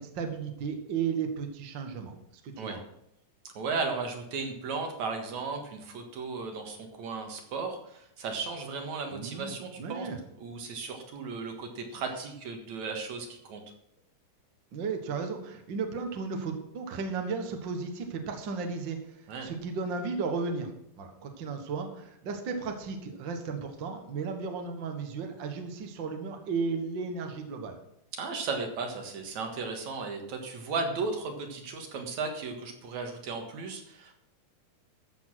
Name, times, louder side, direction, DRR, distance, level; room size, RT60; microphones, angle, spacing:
voice 1, 0.0-2.8 9.1-10.2 14.7-20.7 21.0-27.8, right 5 dB, 45° right, 4 dB, 1.7 m, -34 dB
voice 2, 3.4-10.1 10.4-13.6 19.3-19.5 28.1-34.1, right 4 dB, 65° right, 3 dB, 2.8 m, -35 dB
14.0 x 7.2 x 6.1 m, 0.77 s
omnidirectional pair, 3.6 m